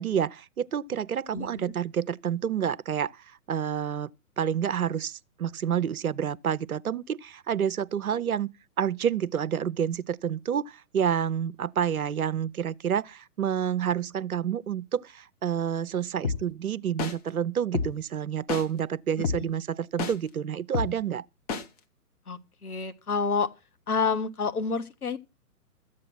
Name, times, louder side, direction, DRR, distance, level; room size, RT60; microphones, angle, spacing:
voice 1, 0.0-4.1 4.4-8.5 8.8-21.2, right 8 dB, 65° right, 0.7 m, -29 dB
voice 2, 1.3-1.7 22.3-23.5 23.9-25.2, left 5 dB, 65° left, 1.6 m, -29 dB
sound 1, 16.2-16.4 17.0-17.1 17.7-17.9 18.5-18.6 19.2-19.4 20.0-20.1 20.7-20.9 21.5-21.6, left 5 dB, 25° left, 1.4 m, -28 dB
13.5 x 8.6 x 6.1 m
figure-of-eight pair, 130°, 47 cm